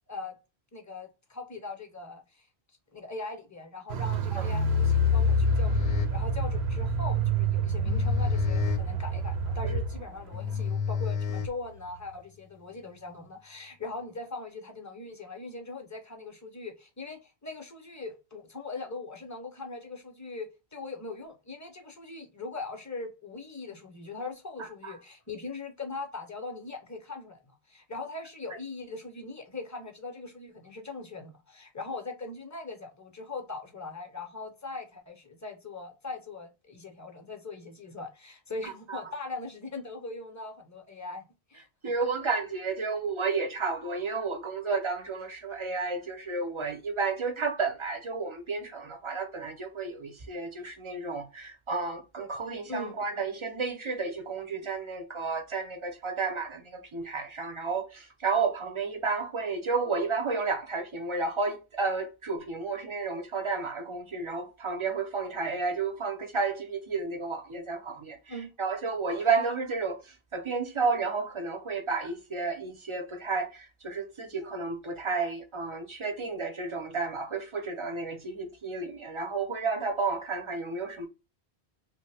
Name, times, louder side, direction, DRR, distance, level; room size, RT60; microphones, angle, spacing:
voice 1, 0.7-2.5 2.9-27.4 27.7-41.7 52.7-53.0 68.3-68.5, left 3 dB, 20° left, 0.5 m, -40 dB
Car, 3.9-10.1 10.3-10.4, equal, 75° right, 0.8 m, -27 dB
sound 1, 5.1-12.1, left 6 dB, 65° left, 0.7 m, -32 dB
voice 2, 24.6-24.9 38.6-39.0 41.8-81.1, right 4 dB, 40° right, 0.5 m, -32 dB
3.1 x 2.1 x 3.3 m
omnidirectional pair, 1.1 m